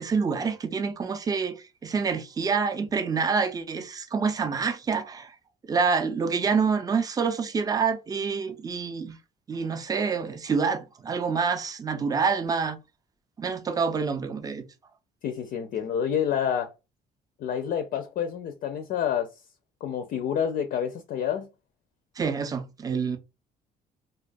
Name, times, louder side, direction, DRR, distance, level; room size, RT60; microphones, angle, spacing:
voice 1, 0.0-1.6 1.8-5.3 5.7-9.2 9.5-12.8 13.4-14.6 22.2-23.2, right 5 dB, 20° right, 0.4 m, -27 dB
voice 2, 15.2-16.7 17.4-19.4 19.8-21.5, left 8 dB, 55° left, 0.4 m, -28 dB
2.2 x 2.2 x 2.5 m
cardioid pair, 110°, 17 cm